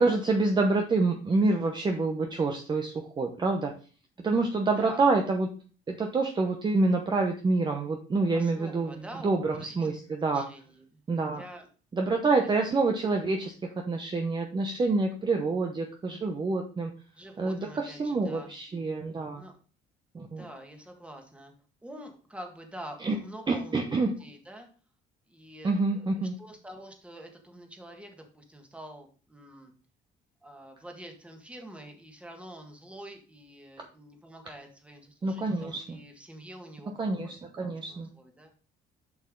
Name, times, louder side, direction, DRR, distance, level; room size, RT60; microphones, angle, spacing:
voice 1, 0.0-3.7 4.2-5.5 5.9-10.4 11.1-11.4 11.9-13.5 13.9-16.9 17.4-19.4 20.1-20.5 23.0-23.1 23.5-24.1 25.6-26.3 35.2-36.0 37.0-38.1, right 3 dB, 25° right, 3 dB, 0.9 m, -27 dB
voice 2, 8.3-9.3 9.5-9.8 10.2-10.8 11.4-11.7 12.4-12.5 17.2-18.5 19.4-19.5 20.4-21.5 21.8-24.7 25.3-26.1 26.4-29.7 30.4-37.3 37.6-38.5, right 1 dB, 5° right, 3 dB, 1.7 m, -46 dB
7.1 x 5.6 x 3.8 m, 0.38 s
cardioid pair, 110°, 17 cm